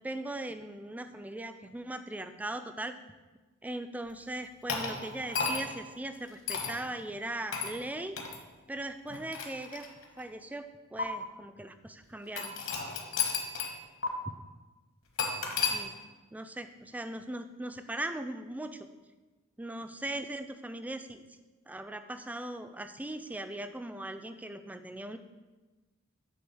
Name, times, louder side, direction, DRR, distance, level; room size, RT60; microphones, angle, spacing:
voice 1, 0.0-2.9 3.6-8.2 8.7-9.9 10.2-12.6 15.7-15.9 16.3-18.9 19.6-21.2 21.7-25.2, right 1 dB, 5° right, 9 dB, 0.3 m, -39 dB
sound 1, 4.7-5.8 6.5-6.8 7.5-7.8 8.2-8.4 9.1-10.2 11.0-11.1 12.4-13.8 14.0-14.1 15.2-15.8, left 5 dB, 65° left, 1.2 m, -33 dB
8.4 x 3.6 x 6.2 m, 1.2 s
head